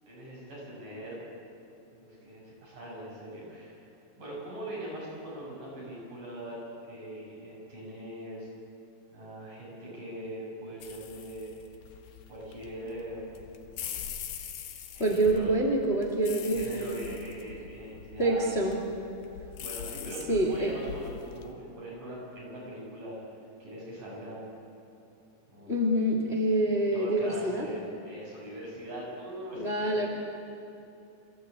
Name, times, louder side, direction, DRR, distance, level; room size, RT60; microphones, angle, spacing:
voice 1, 0.1-1.2 1.9-3.9 4.2-6.6 6.9-8.5 9.1-11.5 12.3-13.8 14.9-15.5 16.5-18.6 19.6-24.6 25.5-25.9 26.9-30.1, right 1 dB, 65° right, -5 dB, 9.6 m, -41 dB
sound 1, 10.8-21.5, left 8 dB, 70° left, 2.7 m, -43 dB
voice 2, 15.0-17.1 18.2-18.8 20.0-20.7 25.7-27.7 29.6-30.1, right 1 dB, 20° left, 1 dB, 1.9 m, -27 dB
27.5 x 15.5 x 8.6 m, 2.7 s
omnidirectional pair, 4.0 m